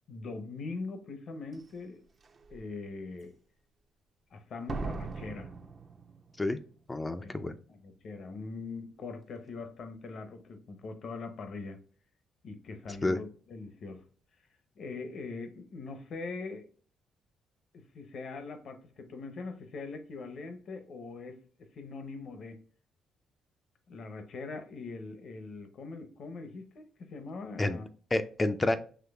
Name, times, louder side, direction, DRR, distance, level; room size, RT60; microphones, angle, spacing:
voice 1, 0.1-2.0 2.5-3.3 4.3-5.5 7.2-11.8 12.4-14.0 14.8-16.7 17.7-22.6 23.9-27.9, left 3 dB, 60° left, 0.7 m, -42 dB
Slam, 1.5-1.6 2.2-2.6 4.7-6.6 6.8-6.9, right 3 dB, 40° right, 0.5 m, -39 dB
voice 2, 6.9-7.5 13.0-13.2 27.6-27.8 28.1-28.8, left 2 dB, 20° left, 0.4 m, -29 dB
5.9 x 3.1 x 2.3 m
cardioid pair, 90°, 0 cm